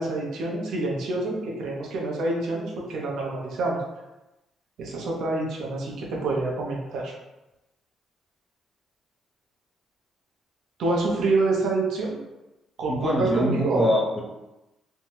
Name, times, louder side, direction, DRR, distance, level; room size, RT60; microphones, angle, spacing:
voice 1, 0.0-3.8 4.8-7.1 10.8-12.2 12.8-14.0, right 2 dB, 75° right, -2 dB, 0.7 m, -27 dB
voice 2, 12.9-14.2, left 1 dB, 15° left, -2 dB, 0.8 m, -24 dB
2.7 x 2.2 x 3.2 m, 0.97 s
cardioid pair, 90°, 0 cm